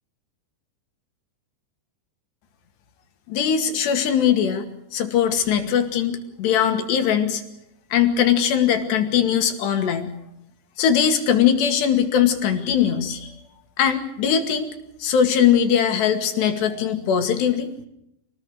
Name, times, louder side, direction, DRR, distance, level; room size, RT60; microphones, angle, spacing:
voice 1, 3.3-4.7 4.9-7.4 7.9-10.1 10.8-13.3 13.8-14.7 15.0-17.7, left 8 dB, 75° left, 6 dB, 4.3 m, -20 dB
26.5 x 19.5 x 6.4 m, 0.76 s
omnidirectional pair, 5.0 m